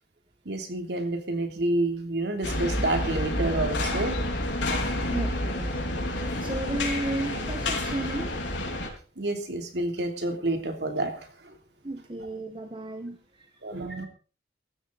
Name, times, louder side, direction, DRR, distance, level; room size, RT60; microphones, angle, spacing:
voice 1, 0.4-4.2 9.2-11.5 13.6-14.1, right 2 dB, 65° right, 5 dB, 3.1 m, -29 dB
sound 1, 2.4-8.9, left 1 dB, 85° left, 4.4 m, -29 dB
voice 2, 5.0-5.8 6.4-8.3 11.8-13.5, right 2 dB, 30° right, 6 dB, 1.3 m, -34 dB
16.0 x 14.0 x 4.1 m, 0.37 s
head